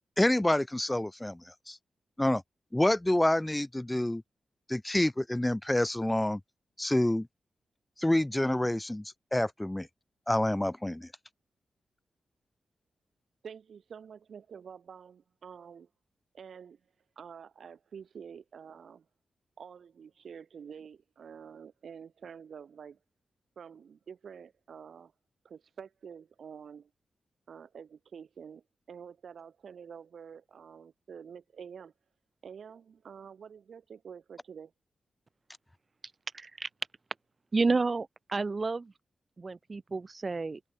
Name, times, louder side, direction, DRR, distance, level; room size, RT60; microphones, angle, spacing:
voice 1, 0.2-1.8 2.2-2.4 2.7-4.2 4.7-6.4 6.8-7.3 8.0-9.9 10.3-11.1, left 1 dB, 10° left, 0.5 m, -28 dB
voice 2, 13.4-15.9 16.3-16.8 17.1-19.0 19.6-23.0 23.6-25.1 25.4-26.9 27.5-31.9 32.4-34.7, right 7 dB, 70° right, 1.5 m, -48 dB
voice 3, 36.3-36.7 37.5-38.9 39.4-40.6, right 3 dB, 35° right, 0.6 m, -30 dB
cardioid pair, 85°, 0 cm